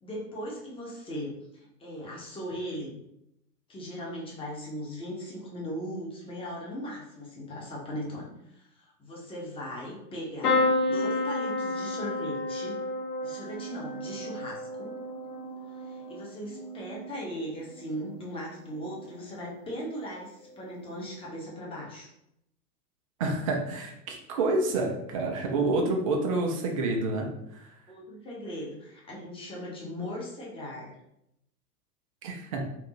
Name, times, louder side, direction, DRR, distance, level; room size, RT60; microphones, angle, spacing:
voice 1, 0.0-3.0 3.7-12.8 13.2-14.9 15.8-22.1 27.9-31.0, equal, 10° left, -4 dB, 0.9 m, -38 dB
sound 1, 10.4-18.3 18.7-19.3 20.5-20.7 20.9-21.0, left 2 dB, 70° left, 0.8 m, -32 dB
voice 2, 23.2-27.7 32.2-32.6, right 2 dB, 25° right, 1 dB, 0.3 m, -28 dB
3.3 x 2.6 x 3.0 m, 0.80 s
figure-of-eight pair, 100°, 48 cm